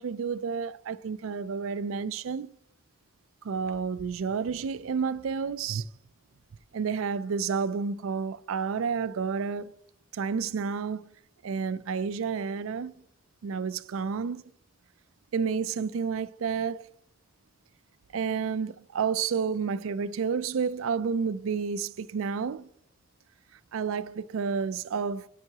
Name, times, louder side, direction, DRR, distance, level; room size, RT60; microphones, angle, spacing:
voice 1, 0.0-2.5 3.4-5.9 6.7-9.7 10.1-11.1 11.4-12.9 13.4-14.4 15.3-16.9 18.1-22.7 23.7-25.3, right 6 dB, 90° right, 0.4 m, -30 dB
9.7 x 9.2 x 2.8 m
head